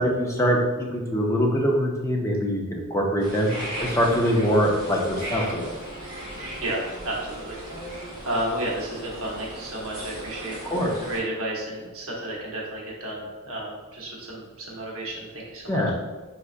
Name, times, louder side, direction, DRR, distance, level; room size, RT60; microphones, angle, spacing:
voice 1, 0.0-5.7 10.6-10.9 15.7-15.9, equal, 15° left, -1 dB, 0.4 m, -23 dB
sound 1, 3.2-11.2, equal, 20° right, 1.0 m, -37 dB
voice 2, 6.6-10.6 10.9-15.8, right 1 dB, 65° right, -3 dB, 0.8 m, -32 dB
4.1 x 2.4 x 2.4 m, 1.3 s
head